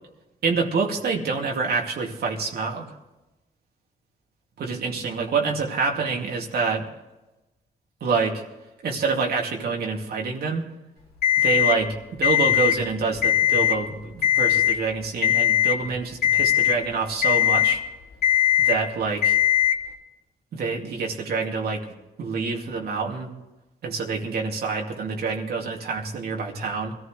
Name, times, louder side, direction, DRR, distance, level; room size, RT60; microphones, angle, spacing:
voice 1, 0.4-2.9 4.6-6.9 8.0-8.4 8.8-10.6 11.4-17.8 18.6-19.4 20.5-21.9 22.2-23.3 23.8-27.0, right 4 dB, 75° right, 1 dB, 2.5 m, -27 dB
Alarm, 11.2-11.8 12.2-12.8 13.2-13.8 14.2-14.8 15.2-15.8 16.2-16.8 17.2-17.8 18.2-18.8 19.2-19.8, left 11 dB, 90° left, 2.8 m, -19 dB
23.5 x 14.0 x 3.3 m, 1.0 s
cardioid pair, 100°, 16 cm